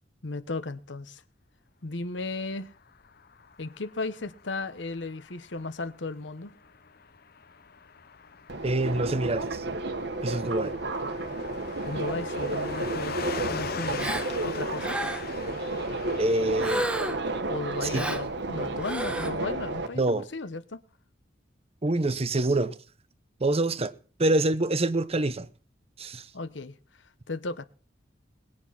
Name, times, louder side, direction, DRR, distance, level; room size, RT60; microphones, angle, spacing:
voice 1, 0.2-1.2 1.8-2.7 3.6-6.5 11.8-13.2 13.5-14.1 14.4-14.9 17.5-20.8 26.3-26.8 27.3-27.6, left 3 dB, 75° left, 1.1 m, -35 dB
Car passing by / Truck, 2.7-17.1, left 5 dB, 55° left, 0.8 m, -42 dB
Subway metro underground, 8.5-19.9, right 2 dB, 65° right, 1.4 m, -32 dB
voice 2, 8.6-9.6 10.2-10.7 16.2-16.9 17.8-18.0 20.0-20.3 21.8-22.7 23.4-23.9 24.2-25.5 26.0-26.3, right 2 dB, 35° right, 0.8 m, -26 dB
Gasp, 14.0-14.3 14.8-15.4 16.6-17.3 17.9-18.3 18.8-19.3, right 1 dB, 5° right, 1.2 m, -31 dB
19.5 x 9.0 x 5.9 m
head